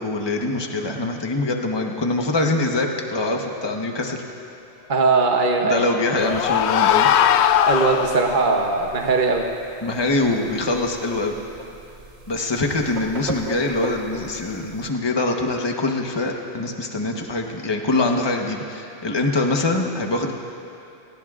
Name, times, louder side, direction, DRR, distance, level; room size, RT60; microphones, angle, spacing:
voice 1, 0.0-4.2 5.6-7.1 9.8-11.3 12.3-20.3, left 2 dB, 25° left, 2 dB, 1.1 m, -23 dB
voice 2, 4.9-5.9 7.6-9.4, right 4 dB, 50° right, 1 dB, 1.1 m, -20 dB
sound 1, 5.6-8.6, left 9 dB, 85° left, 0.8 m, -20 dB
sound 2, 6.2-14.9, right 3 dB, 75° right, 1.6 m, -39 dB
29.0 x 19.0 x 2.5 m, 2.8 s
omnidirectional pair, 1.1 m